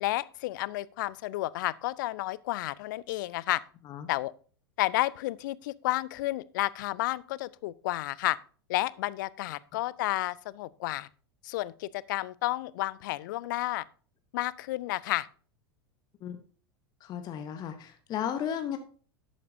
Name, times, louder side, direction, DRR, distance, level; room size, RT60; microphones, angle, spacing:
voice 1, 0.0-3.6 4.1-4.3 4.8-8.4 8.7-11.1 11.4-13.8 14.3-15.3, left 17 dB, 50° left, 0.4 m, -31 dB
voice 2, 17.0-18.8, left 9 dB, 30° left, 0.8 m, -34 dB
11.5 x 8.5 x 2.6 m
figure-of-eight pair, 85°, 13 cm